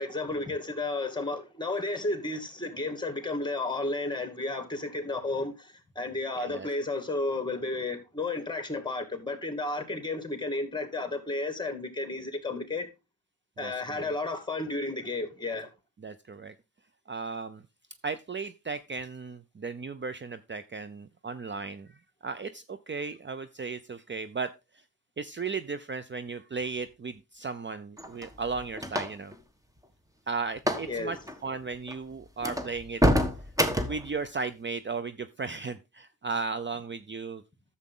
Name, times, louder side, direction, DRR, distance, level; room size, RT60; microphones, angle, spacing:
voice 1, 0.0-12.9 13.6-15.7 30.9-31.2, left 2 dB, 15° left, 2.4 m, -32 dB
voice 2, 6.4-6.7 13.6-14.1 16.0-16.5 17.1-17.6 18.0-21.9 22.2-24.5 25.2-29.3 30.3-31.2 31.4-33.0 33.9-37.4, right 4 dB, 35° right, 0.6 m, -35 dB
sound 1, 28.0-29.3 30.6-30.9 31.1-31.4 31.9-32.0 32.4-34.1, equal, 10° right, 1.4 m, -27 dB
10.5 x 7.3 x 3.8 m
cardioid pair, 75°, 35 cm